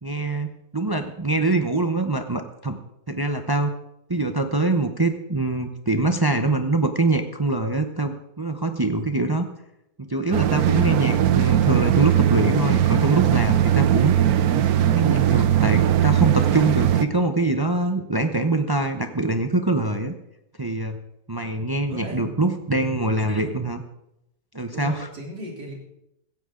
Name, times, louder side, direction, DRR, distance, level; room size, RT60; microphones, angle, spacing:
voice 1, 0.0-2.8 3.1-3.7 4.1-9.5 10.0-14.1 14.7-20.1 20.6-21.0 21.3-23.8 24.5-25.1, right 2 dB, 30° right, 7 dB, 0.4 m, -24 dB
sound 1, 10.3-17.1, right 10 dB, 65° right, 1.2 m, -19 dB
voice 2, 21.9-22.2 24.7-25.7, left 1 dB, 85° right, -1 dB, 4.2 m, -36 dB
16.5 x 15.0 x 3.8 m, 0.83 s
omnidirectional pair, 1.8 m